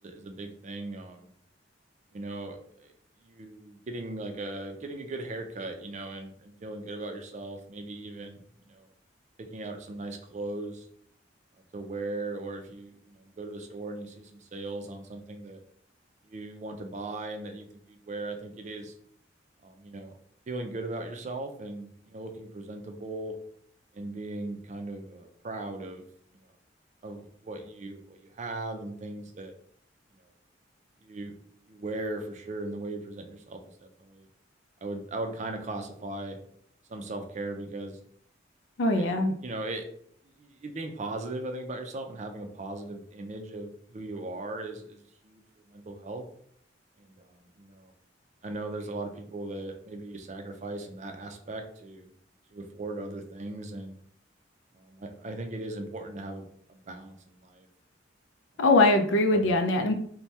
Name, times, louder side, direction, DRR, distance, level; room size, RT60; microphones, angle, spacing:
voice 1, 0.0-1.3 2.1-2.9 3.2-8.9 9.5-10.9 11.7-15.6 16.2-18.9 19.6-20.2 20.5-23.4 23.9-26.1 26.3-26.4 27.0-29.5 31.0-31.3 31.7-34.3 34.8-36.4 36.9-38.0 38.9-39.1 39.4-39.9 40.4-45.4 45.7-46.2 47.0-47.9 48.4-52.1 52.5-54.0 54.7-57.7 59.3-59.5, right 2 dB, 40° right, 5 dB, 0.4 m, -38 dB
voice 2, 38.8-39.3 58.6-59.9, left 2 dB, 85° left, 6 dB, 0.4 m, -22 dB
2.8 x 2.2 x 3.2 m, 0.63 s
head